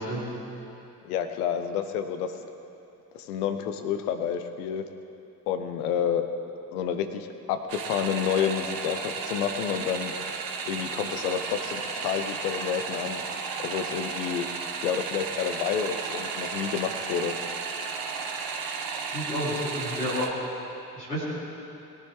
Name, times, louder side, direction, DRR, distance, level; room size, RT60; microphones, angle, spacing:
voice 1, 1.0-2.3 3.1-4.8 5.5-6.2 6.7-10.2 10.6-13.2 13.6-14.5 14.8-17.3, left 8 dB, 70° left, 9 dB, 0.9 m, -29 dB
sound 1, 7.7-20.3, right 5 dB, 45° right, 1.4 m, -34 dB
voice 2, 19.0-20.3 20.9-21.2, equal, 90° left, -8 dB, 2.8 m, -30 dB
21.5 x 10.5 x 3.3 m, 2.9 s
figure-of-eight pair, 40°, 46 cm